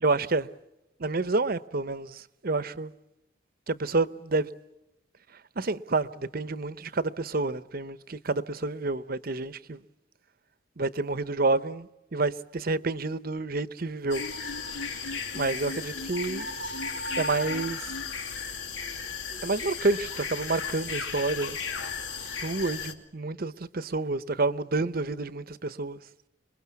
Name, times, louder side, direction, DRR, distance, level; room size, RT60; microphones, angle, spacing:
voice 1, 0.0-0.5 1.0-2.9 3.7-4.5 5.6-9.8 10.8-14.2 15.3-16.5 17.2-17.9 19.4-21.6 22.4-26.0, right 3 dB, 50° right, 0.9 m, -29 dB
sound 1, 14.1-22.9, left 5 dB, 90° left, 2.7 m, -35 dB
27.5 x 21.5 x 8.4 m
head